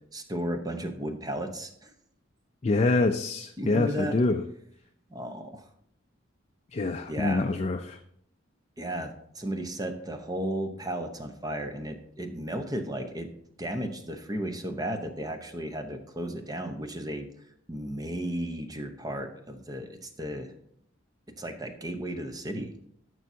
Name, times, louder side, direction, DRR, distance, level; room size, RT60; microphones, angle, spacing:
voice 1, 0.1-1.9 3.6-4.2 5.1-5.7 7.1-7.5 8.8-13.3 13.6-17.3 17.7-20.5 21.4-22.7, right 1 dB, 20° right, 6 dB, 0.8 m, -34 dB
voice 2, 2.6-4.4 6.7-8.0, left 3 dB, 35° left, 5 dB, 0.4 m, -25 dB
13.5 x 6.2 x 2.7 m, 0.69 s
head